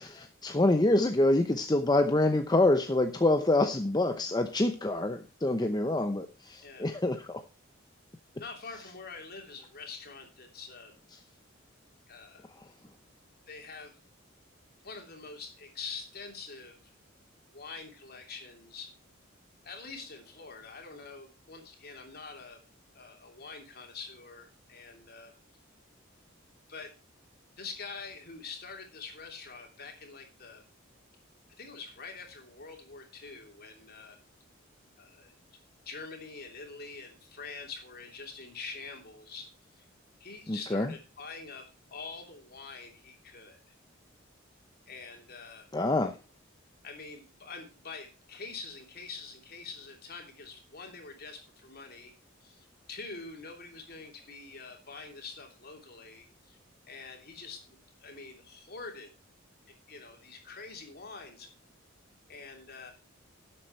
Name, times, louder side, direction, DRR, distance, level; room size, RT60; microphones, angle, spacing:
voice 1, 0.0-7.4 40.5-40.9 45.7-46.2, left 2 dB, 20° left, 6 dB, 0.7 m, -26 dB
voice 2, 8.4-11.0 12.1-12.5 13.5-14.0 14.8-16.9 17.5-18.9 19.6-22.6 22.9-25.3 26.7-26.9 27.6-30.6 31.6-34.2 35.0-35.3 35.8-39.5 39.8-39.9 40.2-43.7 44.9-45.7 46.8-52.1 52.4-56.6 56.9-59.1 59.9-61.5 62.3-62.9, left 4 dB, 50° left, 3 dB, 3.0 m, -45 dB
12.0 x 7.8 x 4.5 m, 0.30 s
head